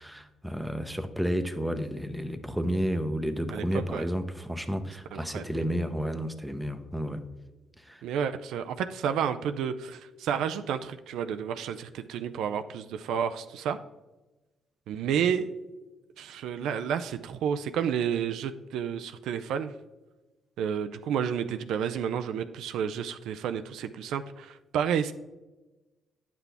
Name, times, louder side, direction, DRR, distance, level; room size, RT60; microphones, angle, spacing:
voice 1, 0.0-7.2 7.9-8.0, equal, 5° right, 8 dB, 0.7 m, -31 dB
voice 2, 3.5-4.1 5.1-5.4 8.0-13.8 14.9-15.5 16.2-19.7 20.6-25.1, right 8 dB, 85° right, 9 dB, 0.4 m, -30 dB
9.5 x 6.0 x 3.4 m, 1.1 s
cardioid pair, 90°, 0 cm